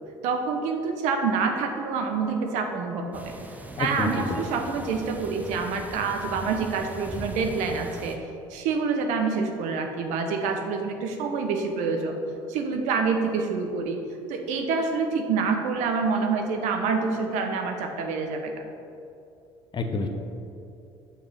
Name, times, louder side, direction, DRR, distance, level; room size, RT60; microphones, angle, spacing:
voice 1, 0.2-3.3 3.8-8.2 8.5-12.2 12.5-14.0 14.3-18.5, right 5 dB, 65° right, 4 dB, 0.8 m, -27 dB
sound 1, 3.1-8.2, right 1 dB, 10° right, 0.8 m, -40 dB
voice 2, 3.8-4.4 19.7-20.1, left 3 dB, 35° left, 5 dB, 0.8 m, -28 dB
5.7 x 4.9 x 5.5 m, 2.7 s
hypercardioid pair, 65°, 13 cm